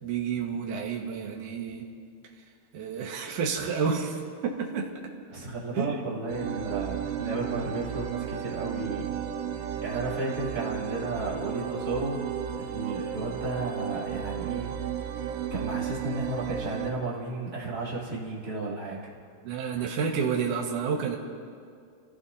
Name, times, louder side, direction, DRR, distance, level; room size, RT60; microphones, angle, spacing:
voice 1, 0.0-1.9 2.7-4.9 5.7-6.0 19.4-21.2, right 6 dB, 60° right, -1 dB, 2.3 m, -30 dB
voice 2, 5.3-9.1 9.6-12.2 12.5-14.7 15.1-19.1, right 2 dB, 25° right, -7 dB, 2.7 m, -33 dB
sound 1, 6.3-16.9, right 9 dB, 80° right, 3.1 m, -34 dB
28.0 x 17.5 x 2.8 m, 2.3 s
omnidirectional pair, 5.7 m